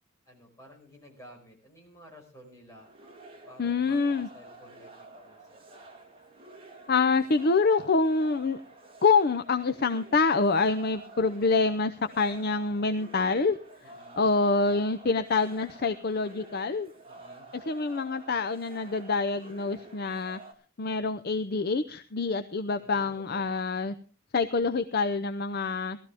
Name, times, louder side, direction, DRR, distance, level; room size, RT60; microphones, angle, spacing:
voice 1, 0.2-2.9 3.5-5.8 13.8-14.2 17.1-17.5 22.8-23.5, equal, 15° left, 0 dB, 5.0 m, -53 dB
sound 1, 2.8-20.5, right 2 dB, 25° right, 2.4 m, -50 dB
voice 2, 3.6-4.3 6.9-8.6 9.0-13.6 14.2-16.9 17.7-20.4 20.8-23.9 24.3-26.0, left 4 dB, 50° left, 10 dB, 0.6 m, -26 dB
18.5 x 13.5 x 3.4 m, 0.35 s
head